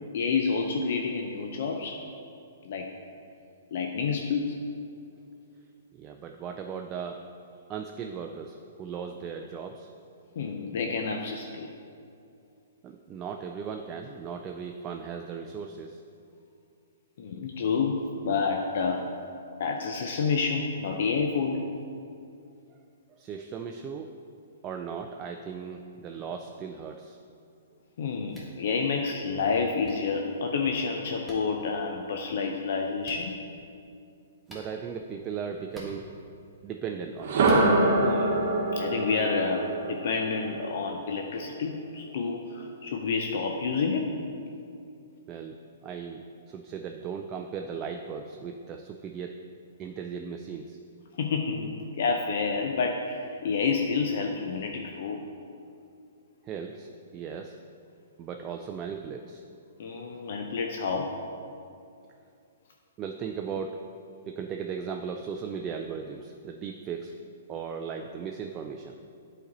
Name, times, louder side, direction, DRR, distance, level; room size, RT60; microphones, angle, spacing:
voice 1, 0.1-2.0 2.6-2.9 3.7-4.6 10.4-11.7 17.2-19.0 19.6-21.7 28.0-33.3 38.0-38.4 38.8-44.1 51.2-55.2 59.8-61.1, left 5 dB, 60° left, 2 dB, 0.5 m, -29 dB
voice 2, 6.0-7.2 7.7-9.9 12.8-16.0 23.2-24.1 24.6-27.2 34.5-36.1 36.6-37.4 45.3-45.6 45.8-49.3 49.8-50.8 56.4-57.6 58.2-59.4 63.0-63.8 64.3-67.1 67.5-69.0, right 6 dB, 25° right, 3 dB, 0.3 m, -37 dB
sound 1, 28.3-28.5 29.8-29.9 31.3-31.4 33.0-33.2 34.5-34.7 35.7-35.9 37.4-37.7, equal, ahead, 1.3 m, -44 dB
sound 2, 37.2-41.2, right 2 dB, 55° right, 1.0 m, -25 dB
8.3 x 4.2 x 4.0 m, 2.5 s
hypercardioid pair, 125°, 0 cm